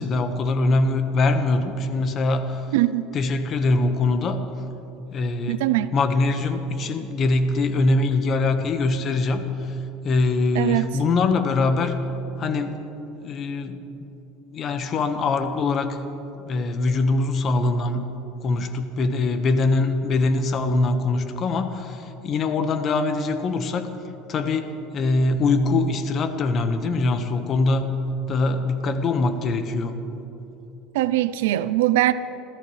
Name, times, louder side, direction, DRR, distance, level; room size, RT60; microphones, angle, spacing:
voice 1, 0.0-2.7 3.1-4.4 5.1-9.8 10.0-12.0 12.4-12.8 13.2-14.2 14.5-16.0 16.4-18.1 18.4-23.9 24.3-27.9 28.3-29.9, left 3 dB, 40° left, 8 dB, 1.3 m, -23 dB
voice 2, 2.7-3.0 5.5-5.9 10.6-10.9 30.9-32.1, right 16 dB, 85° right, 14 dB, 0.4 m, -21 dB
28.5 x 14.0 x 3.3 m, 3.0 s
supercardioid pair, 125°, 0 cm